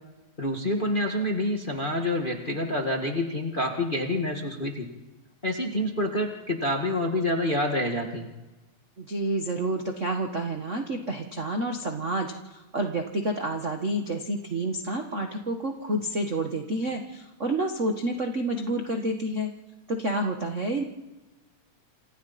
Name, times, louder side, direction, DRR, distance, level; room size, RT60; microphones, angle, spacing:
voice 1, 0.4-4.9 5.4-8.3, left 1 dB, 25° left, 2 dB, 1.3 m, -27 dB
voice 2, 9.0-19.5 19.9-20.8, right 1 dB, 60° right, 3 dB, 0.7 m, -29 dB
28.0 x 25.5 x 4.3 m, 1.1 s
omnidirectional pair, 3.9 m